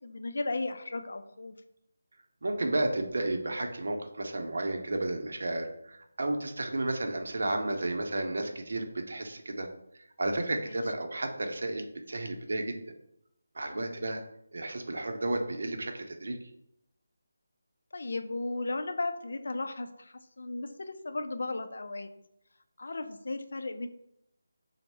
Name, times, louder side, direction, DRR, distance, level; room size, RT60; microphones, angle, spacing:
voice 1, 0.0-1.5 10.7-10.8 13.7-14.1 17.9-22.1 22.8-23.9, left 2 dB, 65° left, 8 dB, 0.4 m, -35 dB
voice 2, 2.4-9.7 10.2-12.7 13.5-14.2 14.5-16.4, right 2 dB, 65° right, 4 dB, 0.6 m, -32 dB
4.0 x 2.0 x 3.4 m, 0.79 s
figure-of-eight pair, 165°, 0 cm